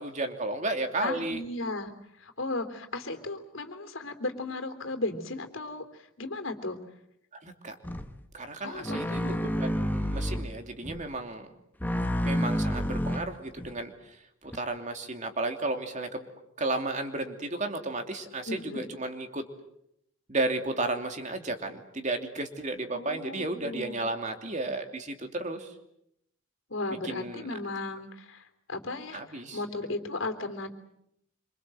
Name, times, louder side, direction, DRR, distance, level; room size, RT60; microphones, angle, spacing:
voice 1, 0.0-1.4 7.3-7.8 8.3-9.2 9.6-11.5 12.2-16.3 16.6-19.5 20.3-25.7 27.0-27.5 29.1-29.6, right 2 dB, 35° right, 5 dB, 2.8 m, -33 dB
voice 2, 1.0-1.9 2.2-6.8 8.6-9.4 18.4-18.8 22.9-24.0 26.7-30.7, left 2 dB, 70° left, 7 dB, 3.4 m, -35 dB
sound 1, 7.8-8.2 8.8-10.5 10.8-11.1 11.8-13.7 14.5-14.6, equal, 10° left, 1.4 m, -29 dB
27.0 x 26.0 x 7.7 m, 0.77 s
head